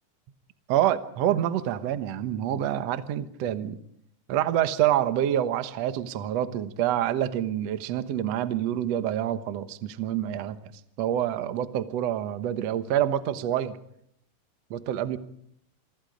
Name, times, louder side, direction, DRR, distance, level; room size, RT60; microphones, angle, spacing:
voice 1, 0.7-3.8 4.3-10.6 11.0-13.7 14.7-15.2, right 11 dB, 80° right, 11 dB, 1.4 m, -27 dB
28.0 x 24.0 x 5.2 m, 0.71 s
omnidirectional pair, 4.8 m